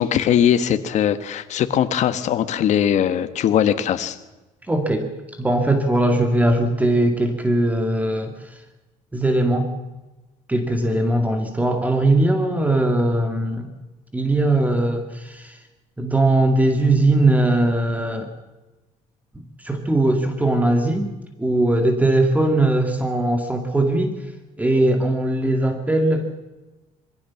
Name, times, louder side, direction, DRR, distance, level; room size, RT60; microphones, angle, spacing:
voice 1, 0.0-4.2, left 9 dB, 60° left, 10 dB, 1.5 m, -20 dB
voice 2, 4.7-5.1 5.4-8.5 9.1-9.7 10.5-13.7 14.1-15.6 16.0-18.3 19.6-21.1 21.4-24.2 24.6-26.3, right 2 dB, 10° right, 6 dB, 2.2 m, -20 dB
23.0 x 16.5 x 7.3 m, 1.1 s
cardioid pair, 120°, 13 cm